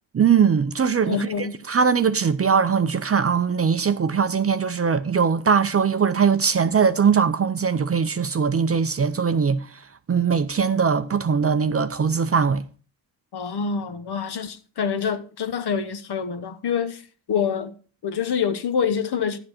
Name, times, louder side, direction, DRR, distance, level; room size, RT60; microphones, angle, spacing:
voice 1, 0.1-9.8 10.1-12.6, right 6 dB, 30° right, 0.5 m, -21 dB
voice 2, 1.0-1.6 13.3-17.0 17.3-17.7 18.0-19.4, left 6 dB, 55° left, 1.1 m, -26 dB
11.0 x 7.6 x 4.3 m
cardioid pair, 90°, 47 cm